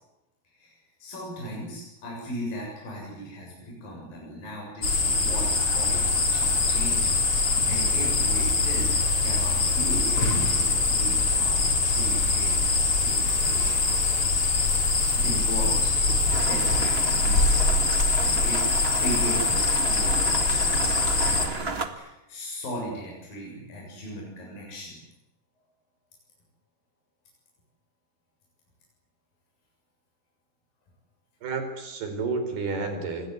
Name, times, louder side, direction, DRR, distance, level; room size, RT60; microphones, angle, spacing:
voice 1, 0.5-7.1 7.4-8.9 9.2-13.8 14.4-17.9 18.2-25.0, right 1 dB, 60° left, -2 dB, 9.0 m, -37 dB
sound 1, 4.8-21.5, left 3 dB, 35° left, 4.3 m, -23 dB
sound 2, 16.3-21.9, right 3 dB, 40° right, 0.8 m, -33 dB
voice 2, 31.4-33.3, right 4 dB, 70° right, 7 dB, 6.5 m, -30 dB
27.5 x 22.0 x 9.7 m, 0.94 s
omnidirectional pair, 4.7 m